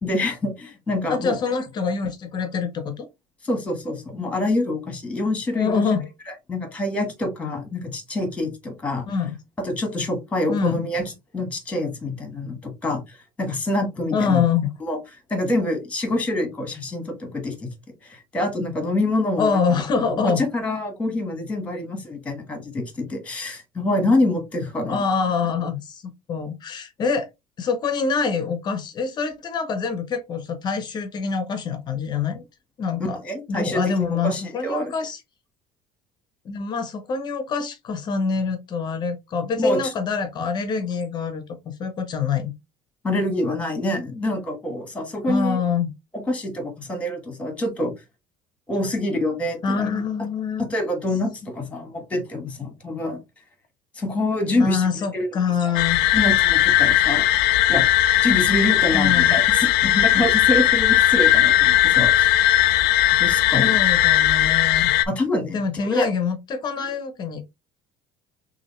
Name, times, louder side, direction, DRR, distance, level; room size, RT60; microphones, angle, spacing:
voice 1, 0.0-1.3 3.4-5.8 6.5-9.1 9.6-14.4 14.8-15.0 15.3-17.7 18.0-19.8 20.1-25.0 33.1-34.9 39.6-39.9 43.0-45.6 46.1-47.9 48.7-49.9 50.6-53.2 53.9-54.9 55.1-55.3 55.6-55.7 56.1-57.3 57.7-57.9 58.2-62.4 63.2-63.8 65.1-66.1, left 1 dB, 10° left, 1.3 m, -26 dB
voice 2, 1.1-3.1 5.5-6.1 9.1-9.4 10.5-10.8 14.1-14.7 19.4-20.4 24.9-27.3 27.6-32.4 32.8-33.2 33.5-35.2 36.4-42.5 45.3-45.9 49.6-50.7 54.6-56.0 58.9-59.4 63.6-64.9 65.5-67.4, left 5 dB, 30° left, 0.7 m, -25 dB
sound 1, 55.7-65.0, left 13 dB, 85° left, 0.5 m, -18 dB
6.1 x 2.6 x 3.0 m
cardioid pair, 175°, 14 cm